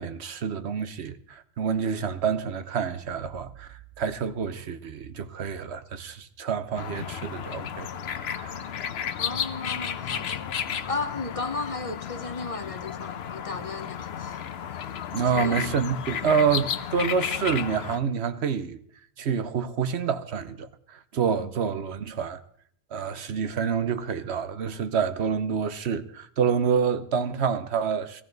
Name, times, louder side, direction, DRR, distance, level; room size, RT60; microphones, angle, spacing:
voice 1, 0.0-8.6 15.1-18.8 19.2-22.4 22.9-28.2, right 6 dB, 85° right, 1.2 m, -28 dB
sound 1, 6.7-18.0, left 8 dB, 75° left, 1.0 m, -33 dB
voice 2, 9.2-10.4 10.9-14.4 15.3-15.7 21.4-21.5, left 3 dB, 35° left, 0.7 m, -34 dB
17.0 x 15.0 x 4.0 m
omnidirectional pair, 1.1 m